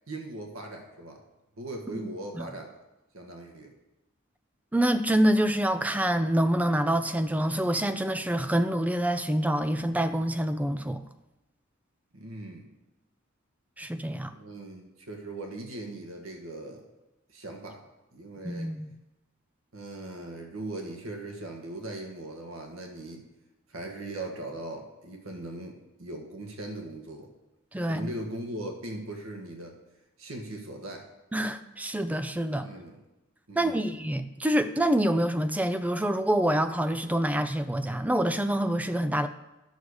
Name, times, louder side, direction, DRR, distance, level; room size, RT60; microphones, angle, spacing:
voice 1, 0.1-1.2 1.6-2.7 3.1-3.7 12.1-12.7 14.3-16.8 17.3-17.8 18.1-18.7 19.7-23.2 23.7-27.3 27.8-29.8 30.2-31.1 32.6-33.0 33.5-33.9, right 1 dB, 85° right, 2 dB, 1.4 m, -39 dB
voice 2, 4.7-11.0 13.8-14.3 18.4-18.9 27.7-28.1 31.3-32.7 33.6-39.3, right 1 dB, 5° right, 10 dB, 0.5 m, -26 dB
11.0 x 6.6 x 4.8 m, 0.99 s
head